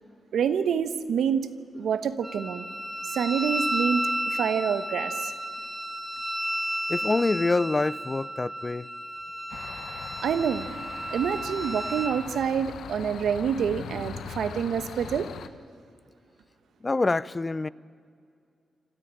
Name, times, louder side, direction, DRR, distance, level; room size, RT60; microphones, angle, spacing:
voice 1, 0.3-1.5 1.7-2.7 3.0-5.3 10.2-10.7 11.1-15.3, right 7 dB, 85° right, 1.1 m, -27 dB
Wind instrument woodwind instrument, 2.2-12.2, equal, 5° right, 1.6 m, -32 dB
voice 2, 6.9-8.9 16.8-17.7, left 3 dB, 25° left, 0.5 m, -26 dB
sound 1, 9.5-15.5, left 7 dB, 90° left, 1.0 m, -40 dB
26.0 x 13.5 x 8.9 m
cardioid pair, 105°, 0 cm